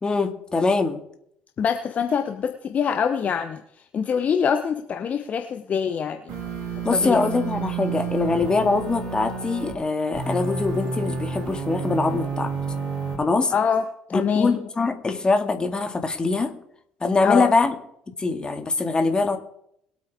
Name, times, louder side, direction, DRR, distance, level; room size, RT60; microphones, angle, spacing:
voice 1, 0.0-1.0 6.8-12.5 13.2-13.5 14.1-16.5 17.0-17.7 18.2-19.4, left 3 dB, 25° left, 6 dB, 2.0 m, -23 dB
voice 2, 1.6-3.6 3.9-6.3 6.9-7.2 13.5-13.8 14.1-14.6 17.2-17.5, left 7 dB, 40° left, 8 dB, 0.9 m, -24 dB
sound 1, 6.3-9.8 10.1-13.1, right 5 dB, 60° right, 4.8 m, -30 dB
22.0 x 8.5 x 3.5 m, 0.74 s
figure-of-eight pair, 55°, 4 cm